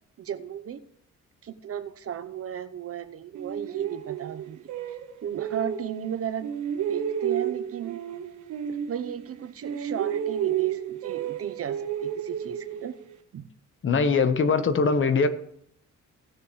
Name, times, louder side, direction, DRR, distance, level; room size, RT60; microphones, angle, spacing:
voice 1, 0.2-0.8 1.4-5.0 5.2-6.5 6.7-8.0 8.7-13.0 13.3-13.5, right 9 dB, 50° right, 0.8 m, -35 dB
sound 1, 3.3-6.1 6.4-9.4 9.6-13.1, right 9 dB, 75° right, 1.3 m, -31 dB
voice 2, 13.8-15.3, left 4 dB, 40° left, 1.1 m, -22 dB
17.0 x 6.5 x 3.2 m
cardioid pair, 90°, 30 cm